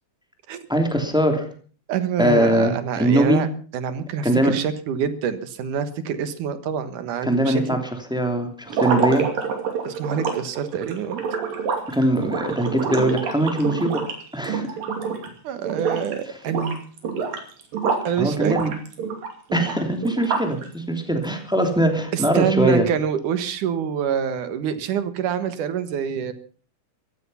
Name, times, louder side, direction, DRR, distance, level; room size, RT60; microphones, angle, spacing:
voice 1, 0.7-1.5 2.2-3.4 4.2-4.6 7.2-7.8 8.1-9.3 11.9-14.0 14.3-14.7 18.2-18.7 19.5-22.9, right 1 dB, ahead, 4 dB, 2.5 m, -21 dB
voice 2, 1.9-3.5 3.7-7.8 9.8-11.2 15.4-16.8 18.0-18.6 22.1-26.3, right 8 dB, 70° right, 11 dB, 2.8 m, -26 dB
sound 1, 8.7-15.3 15.6-16.1 16.4-18.1 18.4-20.6, right 6 dB, 90° right, 4.3 m, -27 dB
15.5 x 15.0 x 5.7 m, 0.41 s
omnidirectional pair, 3.9 m